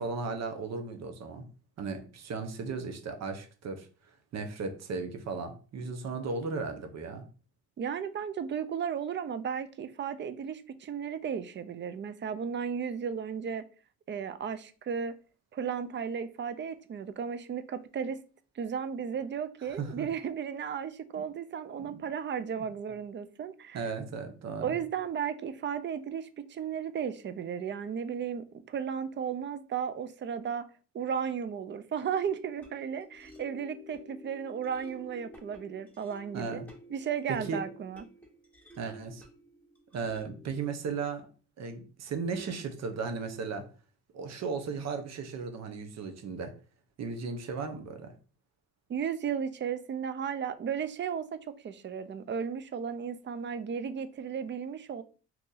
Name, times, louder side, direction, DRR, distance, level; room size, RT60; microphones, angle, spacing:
voice 1, 0.0-1.4 1.8-3.9 4.3-7.2 19.8-20.1 21.2-21.3 21.8-22.0 23.7-24.8 36.3-36.7 37.3-37.6 38.8-39.2 39.9-41.3 41.6-43.6 44.1-46.5 47.0-48.1, right 4 dB, 60° right, 0.8 m, -36 dB
voice 2, 7.8-13.6 14.1-15.1 15.5-18.2 18.6-23.8 24.6-30.6 30.9-36.6 36.9-38.0 48.9-51.3 51.6-55.0, right 7 dB, 40° right, 0.4 m, -34 dB
sound 1, 32.1-40.6, left 1 dB, 5° left, 1.3 m, -52 dB
3.0 x 2.5 x 3.8 m
cardioid pair, 90°, 30 cm